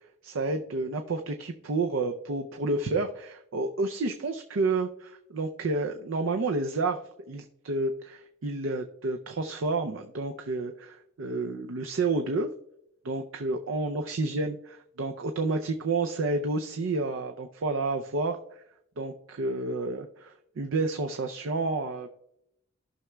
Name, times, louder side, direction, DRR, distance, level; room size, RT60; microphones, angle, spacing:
voice 1, 0.2-7.0 7.3-12.5 13.0-14.6 15.0-18.4 19.0-22.1, right 3 dB, 70° right, 5 dB, 0.5 m, -30 dB
14.0 x 6.0 x 2.2 m, 0.78 s
head